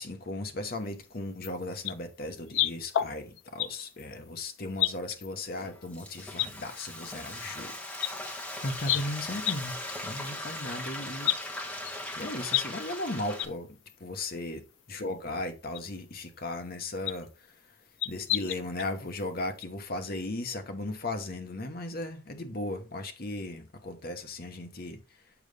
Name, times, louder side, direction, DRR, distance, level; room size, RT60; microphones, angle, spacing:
voice 1, 0.0-7.7 8.6-9.7 10.0-11.7 12.2-13.7 14.0-14.6 14.9-17.5 18.0-25.0, left 2 dB, 50° left, 1.0 m, -36 dB
sound 1, 1.4-1.5 1.8-1.9 2.5-3.7 4.0-4.1 4.8-5.3 5.8-5.9 6.4-6.5 7.7-7.8 8.0-8.1 8.8-9.0 9.4-9.6 9.9-10.0 10.3-10.4 11.2-11.4 11.8-12.6 12.9-13.0 13.4-13.5 13.9-14.0 14.9-15.0 15.7-15.8 17.1-17.2 18.0-18.9 19.2-19.3 19.6-19.7, left 13 dB, 75° left, 0.4 m, -29 dB
Frying (food), 5.6-13.5, left 1 dB, 5° left, 1.1 m, -39 dB
7.2 x 5.3 x 3.3 m
head